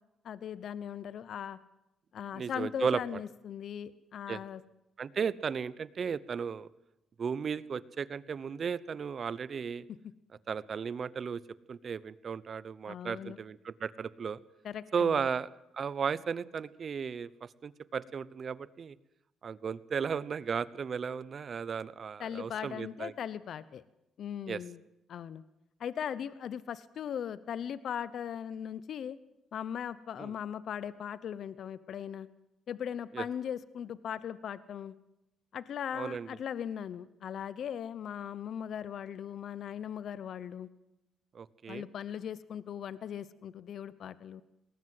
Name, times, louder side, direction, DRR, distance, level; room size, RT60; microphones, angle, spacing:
voice 1, 0.2-1.6 2.1-4.6 12.9-13.4 14.6-15.3 22.2-23.8 24.2-24.8 25.1-25.4 25.8-29.2 29.5-32.3 32.7-34.9 35.5-40.7 41.7-44.4, left 9 dB, 65° left, 17 dB, 0.9 m, -39 dB
voice 2, 2.3-3.0 4.3-4.4 5.0-6.7 7.2-9.9 10.5-11.4 11.7-14.4 14.9-15.5 15.7-19.0 19.4-23.1 24.5-24.6 30.2-30.3 33.1-33.2 35.9-36.3 41.3-41.8, right 6 dB, 50° right, 19 dB, 0.9 m, -35 dB
20.0 x 18.5 x 7.9 m, 0.88 s
cardioid pair, 90°, 0 cm